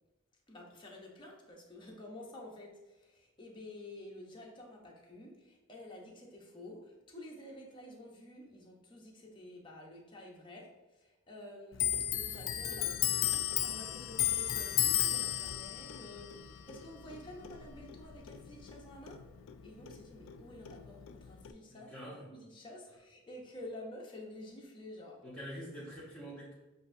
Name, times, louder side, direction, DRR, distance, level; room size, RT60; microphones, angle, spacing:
voice 1, 0.5-19.2 19.6-25.2, left 1 dB, 25° left, -1 dB, 0.8 m, -50 dB
Clock, 11.7-18.8 19.1-20.4 20.7-21.5, left 12 dB, 70° left, 0.3 m, -34 dB
voice 2, 21.7-22.3 25.2-26.5, equal, 5° left, -11 dB, 1.2 m, -45 dB
7.6 x 2.6 x 2.6 m, 1.1 s
head